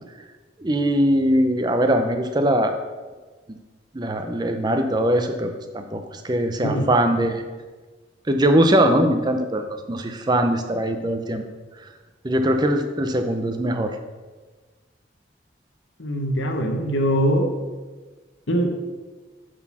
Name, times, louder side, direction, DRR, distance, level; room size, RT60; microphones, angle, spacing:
voice 1, 0.6-2.7 3.9-7.4 8.3-11.4 12.2-14.0, right 1 dB, 20° right, 6 dB, 0.5 m, -21 dB
voice 2, 16.0-17.5 18.5-18.7, equal, 80° left, 4 dB, 1.0 m, -22 dB
7.7 x 4.0 x 5.9 m, 1.3 s
head